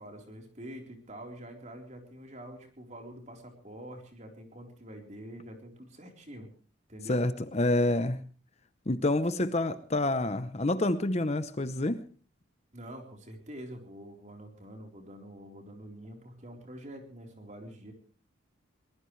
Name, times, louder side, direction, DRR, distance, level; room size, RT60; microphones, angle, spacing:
voice 1, 0.0-6.5 6.9-7.2 12.7-17.9, right 1 dB, 35° right, 3 dB, 4.0 m, -46 dB
voice 2, 7.1-8.2 8.9-12.0, left 2 dB, 30° left, 12 dB, 0.7 m, -28 dB
22.5 x 20.0 x 3.2 m, 0.39 s
head